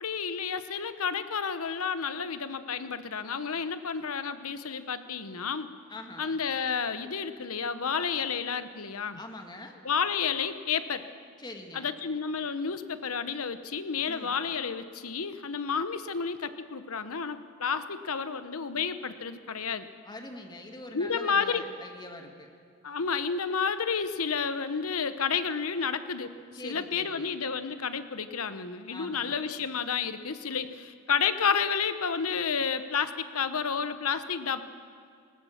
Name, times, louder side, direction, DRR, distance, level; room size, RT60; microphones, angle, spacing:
voice 1, 0.0-5.7 6.2-9.2 9.8-11.0 11.7-19.9 20.9-21.7 22.8-26.3 26.6-34.6, left 6 dB, 80° left, 11 dB, 1.0 m, -31 dB
voice 2, 5.9-6.3 9.2-9.8 11.4-11.9 14.1-14.4 20.1-22.5 26.5-27.3 28.9-29.4, left 1 dB, 20° left, 3 dB, 1.9 m, -44 dB
19.5 x 19.0 x 7.3 m, 2.3 s
head